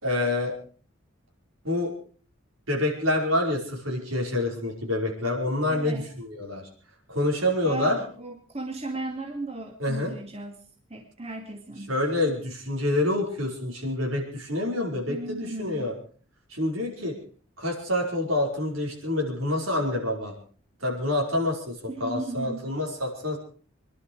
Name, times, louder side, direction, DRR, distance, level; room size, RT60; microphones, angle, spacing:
voice 1, 0.0-0.5 1.6-1.9 2.7-6.7 7.1-8.0 9.8-10.1 11.9-15.9 16.5-17.2 17.6-20.3 20.8-21.7 22.0-23.4, left 1 dB, 75° right, 0 dB, 5.2 m, -27 dB
voice 2, 5.7-6.0 7.6-10.6 10.9-11.9 15.1-15.9 21.9-22.6, right 2 dB, 30° right, 2 dB, 2.2 m, -36 dB
26.0 x 11.5 x 4.8 m, 0.41 s
head